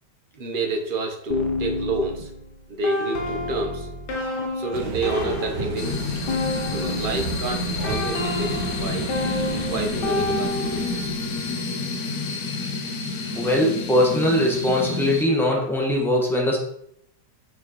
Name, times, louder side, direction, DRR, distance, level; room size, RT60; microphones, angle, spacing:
voice 1, 0.3-2.3 2.7-3.9 4.5-6.1 6.7-9.1 9.6-11.1, right 2 dB, 40° right, 2 dB, 0.8 m, -29 dB
sound 1, 1.3-7.2 7.8-11.0, left 2 dB, 75° left, 1.5 m, -29 dB
sound 2, 4.7-11.5, right 5 dB, 80° right, 1.4 m, -34 dB
sound 3, 5.8-15.2, left 3 dB, 60° left, 1.1 m, -29 dB
voice 2, 13.4-16.6, left 1 dB, ahead, -2 dB, 1.0 m, -21 dB
6.2 x 5.6 x 3.0 m, 0.72 s
omnidirectional pair, 1.9 m